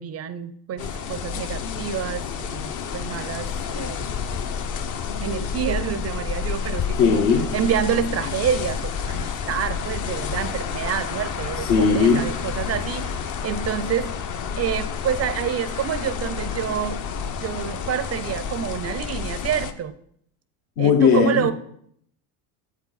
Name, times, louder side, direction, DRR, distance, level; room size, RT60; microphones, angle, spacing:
voice 1, 0.0-4.1 5.2-7.2 7.5-14.1 14.6-17.0 17.4-20.0 20.8-21.5, right 8 dB, 35° right, 13 dB, 0.5 m, -28 dB
sound 1, 0.8-19.7, left 6 dB, 40° left, 0.8 m, -30 dB
voice 2, 7.0-7.5 11.6-12.2 20.8-21.5, left 6 dB, 60° left, -1 dB, 1.4 m, -18 dB
8.2 x 8.1 x 4.0 m, 0.68 s
supercardioid pair, 95°, 46 cm